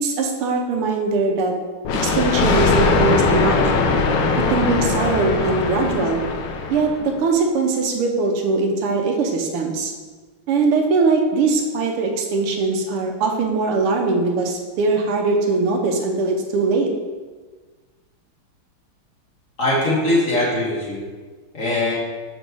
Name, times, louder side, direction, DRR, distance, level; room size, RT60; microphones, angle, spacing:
voice 1, 0.0-1.5 2.0-3.7 4.5-6.2 6.7-9.9 10.5-16.9, right 3 dB, 85° right, 2 dB, 1.8 m, -21 dB
Thunder, 1.8-7.2, left 4 dB, 70° left, 1.2 m, -20 dB
voice 2, 19.6-21.0 21.5-21.9, left 1 dB, 40° left, -6 dB, 1.7 m, -20 dB
5.2 x 4.6 x 6.1 m, 1.4 s
omnidirectional pair, 2.4 m